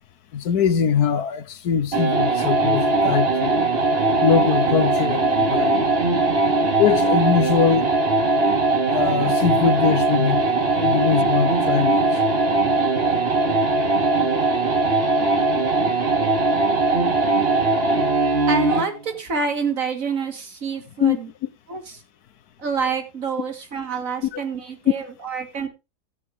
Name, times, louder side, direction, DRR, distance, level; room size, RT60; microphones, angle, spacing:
voice 1, 0.3-3.6 4.2-5.9 6.8-7.9 8.9-12.0 21.0-21.2 24.2-24.4, left 7 dB, 75° left, 1.4 m, -22 dB
sound 1, 1.9-18.9, right 3 dB, 40° right, 1.6 m, -20 dB
voice 2, 18.5-21.3 21.7-21.8 22.6-25.7, right 5 dB, 55° right, 2.1 m, -27 dB
13.0 x 8.3 x 3.5 m
omnidirectional pair, 1.7 m